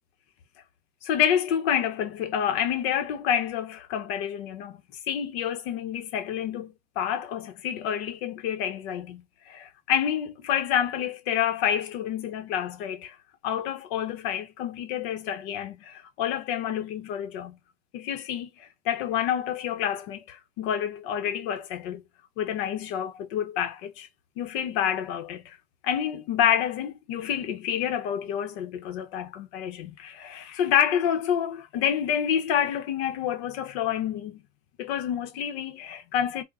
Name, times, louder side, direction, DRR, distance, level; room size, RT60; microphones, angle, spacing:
voice 1, 1.0-4.8 5.1-13.2 13.4-17.6 17.9-22.0 22.4-24.1 24.4-25.6 25.8-34.4 34.8-36.4, left 9 dB, 55° left, 1.1 m, -28 dB
3.6 x 2.4 x 4.1 m
supercardioid pair, 130°, 36 cm